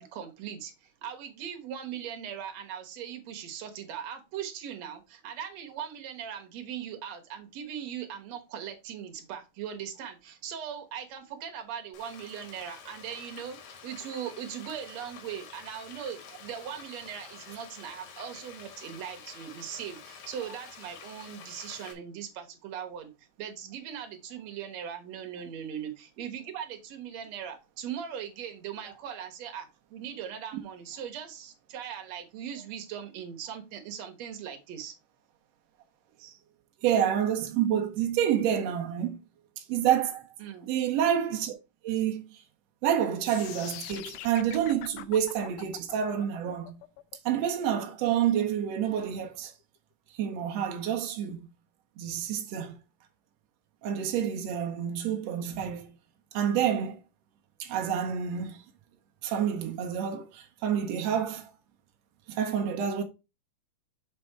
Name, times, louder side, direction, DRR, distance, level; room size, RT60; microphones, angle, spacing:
voice 1, 0.0-13.6 13.8-23.1 23.4-34.9 40.4-40.7, right 8 dB, 60° right, 2.0 m, -39 dB
Frying (food), 11.9-21.9, left 6 dB, 65° left, 2.3 m, -48 dB
voice 2, 36.8-39.2 39.6-40.2 40.7-41.5 41.8-42.2 42.8-46.8 47.2-49.5 50.2-51.4 52.0-52.8 53.8-55.9 56.3-57.0 57.6-58.6 59.2-61.5 62.3-63.0, right 9 dB, 80° right, 1.5 m, -28 dB
sound 1, 43.3-49.3, left 13 dB, 80° left, 1.9 m, -44 dB
6.6 x 4.3 x 4.5 m
omnidirectional pair, 4.0 m